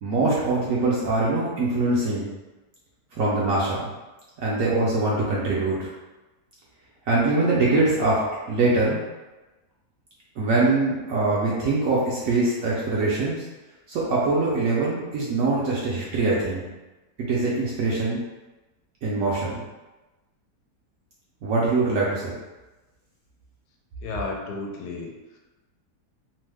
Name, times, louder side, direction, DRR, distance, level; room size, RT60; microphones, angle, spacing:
voice 1, 0.0-2.3 3.1-3.9 4.4-5.9 7.1-9.0 10.4-13.4 13.9-16.6 17.2-18.2 19.0-19.6 21.4-22.3, right 3 dB, 65° right, -6 dB, 0.9 m, -23 dB
voice 2, 24.0-25.4, left 3 dB, 80° left, 0 dB, 1.1 m, -33 dB
3.0 x 2.0 x 3.3 m, 1.1 s
omnidirectional pair, 1.7 m